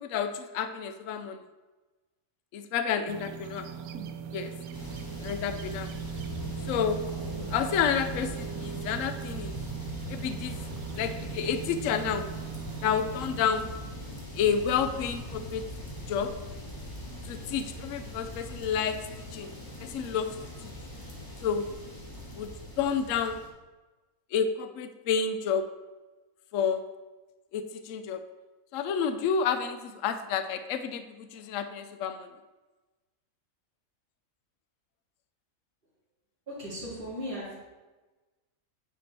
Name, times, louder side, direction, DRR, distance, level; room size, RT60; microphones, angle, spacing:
voice 1, 0.0-1.4 2.5-3.7 4.3-4.5 5.2-5.9 6.7-7.0 7.5-9.5 10.1-10.6 11.0-12.3 12.8-13.7 14.3-15.6 16.1-16.3 17.2-19.0 19.3-19.5 19.8-20.3 21.4-21.7 22.3-22.5 22.8-23.4 24.3-25.6 26.5-26.8 27.5-28.2 28.7-32.3, left 7 dB, 70° left, 9 dB, 0.9 m, -30 dB
sound 1, 3.1-13.4, right 9 dB, 85° right, 1.0 m, -39 dB
sound 2, 4.7-23.5, left 1 dB, 15° left, 1.2 m, -41 dB
voice 2, 36.5-37.5, equal, 40° right, -12 dB, 2.6 m, -37 dB
9.4 x 4.6 x 4.3 m, 1.2 s
omnidirectional pair, 1.5 m